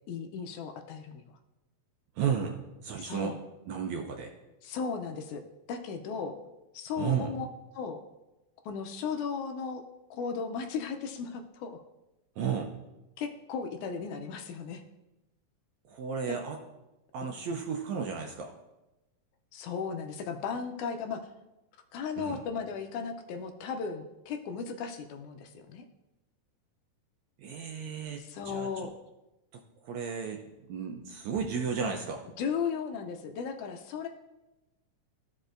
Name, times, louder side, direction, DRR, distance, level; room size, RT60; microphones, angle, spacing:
voice 1, 0.1-1.2 3.0-3.4 4.6-5.4 5.7-6.4 6.7-7.5 7.7-8.0 8.7-9.8 10.1-11.8 13.2-14.8 16.3-16.4 19.5-21.2 21.9-25.8 28.2-28.9 32.4-34.1, left 6 dB, 80° left, 5 dB, 1.9 m, -36 dB
voice 2, 2.2-2.6 2.8-3.3 3.7-4.3 7.0-7.3 12.4-12.7 15.9-16.6 17.1-18.5 22.2-22.4 27.4-28.7 29.5-32.2, right 7 dB, 80° right, 3 dB, 1.7 m, -33 dB
14.0 x 5.3 x 2.5 m, 0.99 s
omnidirectional pair, 3.7 m